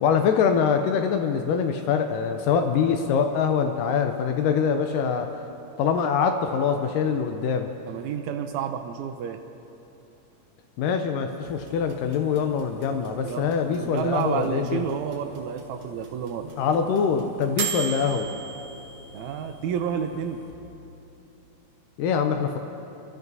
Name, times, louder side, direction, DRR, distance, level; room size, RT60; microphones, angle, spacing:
voice 1, 0.0-5.3 5.8-7.7 10.8-14.9 16.6-18.3 22.0-22.6, left 6 dB, 80° left, 6 dB, 2.1 m, -24 dB
voice 2, 7.9-9.4 13.2-16.5 19.1-20.4, right 8 dB, 90° right, 6 dB, 1.6 m, -30 dB
sound 1, 11.5-20.5, right 5 dB, 55° right, 2.2 m, -39 dB
26.0 x 13.5 x 2.7 m, 3.0 s
omnidirectional pair, 4.0 m